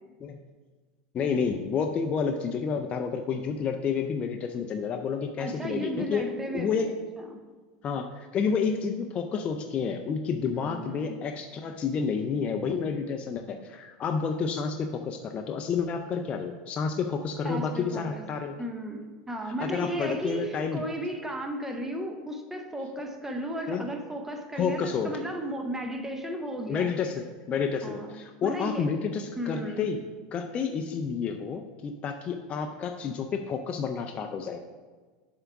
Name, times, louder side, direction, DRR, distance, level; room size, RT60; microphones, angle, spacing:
voice 1, 1.1-6.9 7.8-18.6 19.6-20.8 23.7-23.9 24.6-25.2 26.7-30.0 30.3-34.6, left 6 dB, 30° left, 5 dB, 0.4 m, -30 dB
voice 2, 5.4-7.4 10.5-11.2 17.4-18.2 18.6-26.9 27.8-28.1 28.4-28.8 29.4-29.9, right 1 dB, 10° right, 4 dB, 0.7 m, -35 dB
7.4 x 3.5 x 5.8 m, 1.4 s
supercardioid pair, 140°, 4 cm